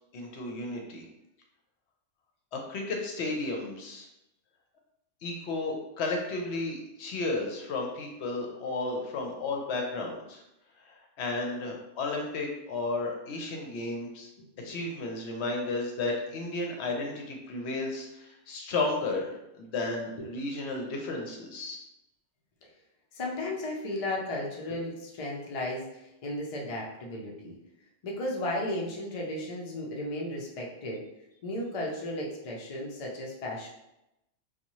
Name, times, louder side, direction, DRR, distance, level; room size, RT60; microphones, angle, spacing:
voice 1, 0.1-1.0 2.5-4.1 5.2-10.4 10.8-14.3 14.6-21.8, left 2 dB, 70° left, 1 dB, 0.8 m, -33 dB
voice 2, 23.1-27.5 28.0-31.0 31.4-33.7, left 1 dB, 50° left, -2 dB, 0.4 m, -34 dB
2.6 x 2.3 x 2.9 m, 0.88 s
omnidirectional pair, 1.2 m